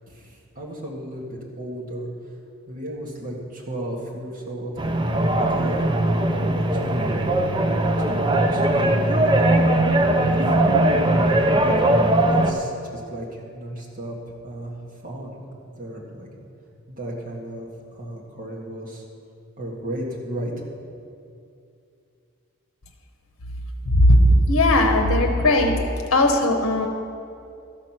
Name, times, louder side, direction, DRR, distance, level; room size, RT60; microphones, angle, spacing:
voice 1, 0.1-1.3 1.6-2.1 2.7-4.7 5.4-7.2 8.1-9.7 10.3-10.9 11.2-11.7 12.3-14.2 14.4-14.8 15.0-16.3 16.9-19.0 19.6-20.5, right 1 dB, 40° right, -3 dB, 1.8 m, -34 dB
sound 1, 4.8-12.5, right 1 dB, 20° right, 0.5 m, -20 dB
voice 2, 23.9-25.8 26.1-26.9, left 1 dB, 70° left, 3 dB, 0.9 m, -17 dB
13.0 x 6.1 x 6.0 m, 2.5 s
head